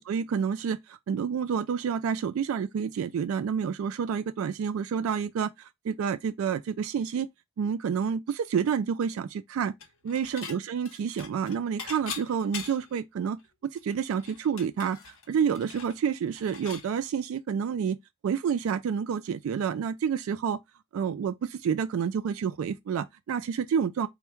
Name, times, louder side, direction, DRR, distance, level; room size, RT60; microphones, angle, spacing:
voice 1, 0.0-7.3 7.6-9.7 10.0-18.0 18.2-20.6 20.9-24.1, right 7 dB, 75° right, 0.3 m, -29 dB
Dishes pots and pans / Chink clink, 9.8-10.6 10.9-13.0 13.4-13.5 13.8-16.9, left 6 dB, 80° left, 0.8 m, -41 dB
3.5 x 2.1 x 4.3 m
head